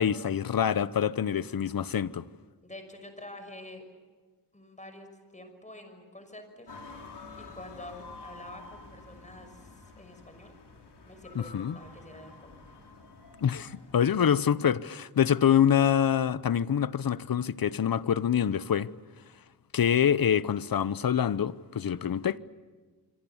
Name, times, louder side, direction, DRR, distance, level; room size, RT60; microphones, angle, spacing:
voice 1, 0.0-2.3 11.3-11.8 13.4-18.9 19.7-22.4, left 8 dB, 60° left, 0.8 m, -26 dB
voice 2, 2.6-3.8 4.5-5.1 5.3-6.7 7.4-10.6 11.0-12.7, left 1 dB, 20° left, 6.0 m, -47 dB
sound 1, 6.7-14.4, left 3 dB, 85° left, 4.0 m, -49 dB
26.0 x 25.5 x 7.2 m
wide cardioid pair, 75°, 40 cm